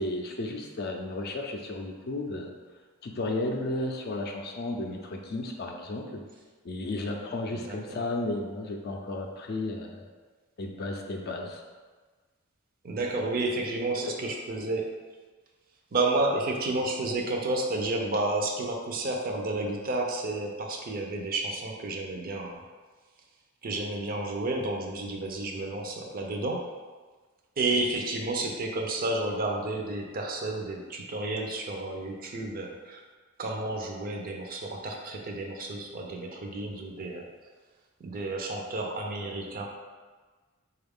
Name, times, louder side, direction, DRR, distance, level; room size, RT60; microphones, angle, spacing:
voice 1, 0.0-2.5 3.0-6.2 6.6-10.1 10.6-11.6, left 2 dB, 50° left, 2 dB, 0.4 m, -33 dB
voice 2, 7.5-8.0 12.8-14.9 15.9-22.6 23.6-26.7 27.6-33.0 33.4-37.3 38.0-39.7, right 2 dB, 45° right, 1 dB, 0.5 m, -31 dB
4.0 x 2.3 x 3.5 m, 1.4 s
head